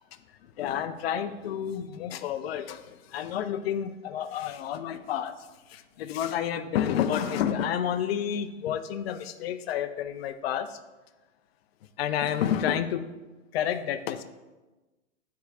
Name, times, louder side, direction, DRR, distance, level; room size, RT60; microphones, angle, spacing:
voice 1, 0.4-10.8 12.0-13.0 13.5-14.2, left 9 dB, 50° left, 10 dB, 0.5 m, -30 dB
9.4 x 4.7 x 2.4 m, 1.1 s
hypercardioid pair, 125°, 39 cm